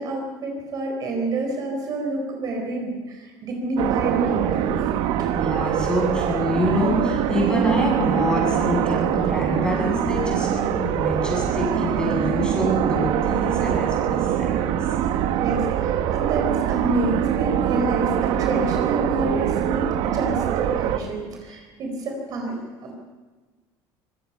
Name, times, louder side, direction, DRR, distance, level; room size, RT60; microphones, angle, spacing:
voice 1, 0.0-4.8 5.2-5.3 15.4-22.5 22.8-22.9, right 2 dB, 40° right, 1 dB, 4.2 m, -28 dB
sound 1, 3.8-21.0, right 10 dB, 65° right, 1.4 m, -23 dB
voice 2, 5.3-14.8, left 1 dB, 10° left, -2 dB, 8.0 m, -26 dB
24.5 x 20.5 x 5.7 m, 1.3 s
cardioid pair, 155°, 9 cm